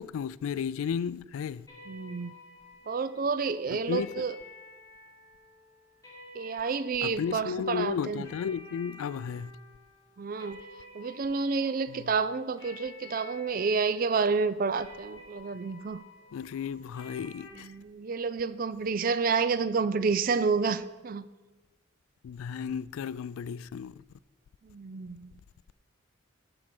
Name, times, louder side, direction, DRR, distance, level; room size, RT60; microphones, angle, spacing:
voice 1, 0.0-1.7 3.7-4.3 7.0-9.5 16.3-17.7 22.2-23.9, left 7 dB, 90° left, 0.3 m, -34 dB
sound 1, 1.7-17.5, left 2 dB, 15° left, 3.9 m, -52 dB
voice 2, 1.9-2.3 2.9-4.4 6.3-8.3 10.2-10.6 10.9-16.0 17.5-21.2 24.6-25.3, right 5 dB, 45° right, 0.4 m, -29 dB
14.0 x 4.8 x 5.9 m
head